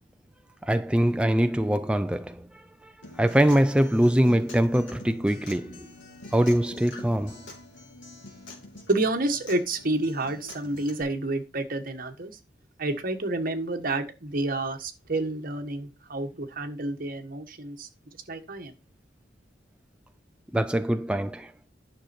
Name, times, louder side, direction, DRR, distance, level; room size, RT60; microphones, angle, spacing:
voice 1, 0.6-5.9 6.3-7.4 20.5-21.5, equal, 5° right, 0.4 m, -23 dB
Acoustic guitar, 3.0-11.0, left 2 dB, 85° left, 3.1 m, -46 dB
voice 2, 8.9-12.3 12.8-17.9 18.3-18.7, right 2 dB, 50° right, 1.5 m, -29 dB
10.5 x 6.3 x 4.4 m
head